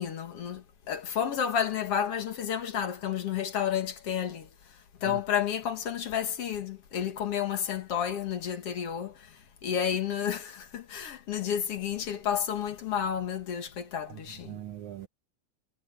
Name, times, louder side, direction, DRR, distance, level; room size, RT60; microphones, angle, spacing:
voice 1, 0.0-4.5 5.0-14.6, left 8 dB, 55° left, 2.4 m, -31 dB
voice 2, 14.1-15.1, right 12 dB, 75° right, 2.4 m, -41 dB
omnidirectional pair, 3.4 m